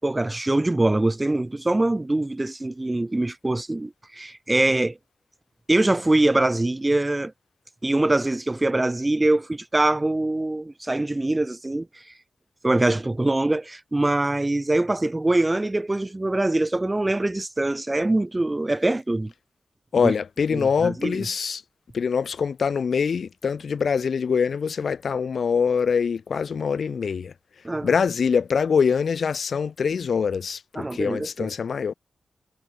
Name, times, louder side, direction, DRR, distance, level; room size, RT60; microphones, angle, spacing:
voice 1, 0.0-5.0 5.7-7.3 7.8-11.9 12.6-19.3 20.0-20.1 20.5-21.2 27.6-27.9 30.8-31.5, right 2 dB, 15° right, 4.6 m, -23 dB
voice 2, 19.9-21.6 21.9-27.3 27.8-31.9, left 6 dB, 60° left, 6.8 m, -24 dB
wide cardioid pair, 160°, 0 cm